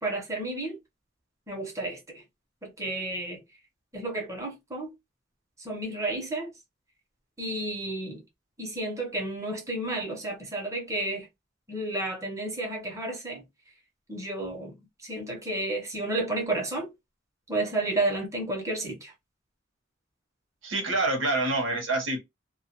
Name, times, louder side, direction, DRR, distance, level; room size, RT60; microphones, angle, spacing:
voice 1, 0.0-0.8 1.5-2.2 2.6-3.4 3.9-4.9 5.6-6.5 7.4-8.2 8.6-11.3 11.7-13.4 14.1-14.7 15.0-16.9 17.5-19.1, right 2 dB, 15° right, 0.8 m, -31 dB
voice 2, 20.6-22.2, right 2 dB, 90° right, 1.0 m, -26 dB
2.2 x 2.2 x 2.8 m
head